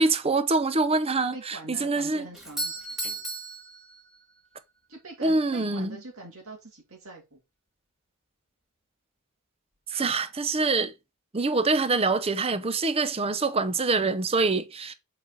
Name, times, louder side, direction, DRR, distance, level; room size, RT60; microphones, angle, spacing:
voice 1, 0.0-2.3 5.2-6.0 9.9-10.9 11.3-14.9, right 3 dB, 25° right, 0.6 m, -25 dB
voice 2, 1.3-2.7 4.9-7.4, right 2 dB, 65° right, 2.3 m, -44 dB
Doorbell, 2.3-4.5, right 2 dB, ahead, 1.7 m, -35 dB
7.2 x 4.2 x 3.8 m
head